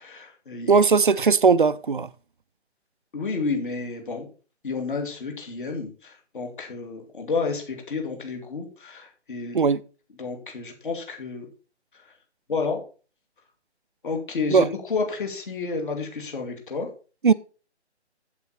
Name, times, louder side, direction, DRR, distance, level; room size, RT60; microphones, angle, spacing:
voice 1, 0.0-0.7 3.1-4.3 4.6-9.6 10.2-11.5 11.9-12.1 12.5-12.8 14.0-16.9, left 4 dB, 45° left, 2.7 m, -30 dB
voice 2, 0.7-2.1 9.5-9.8 14.5-14.7 17.2-17.3, right 5 dB, 45° right, 0.5 m, -18 dB
8.3 x 8.2 x 4.3 m
figure-of-eight pair, 145°, 35 cm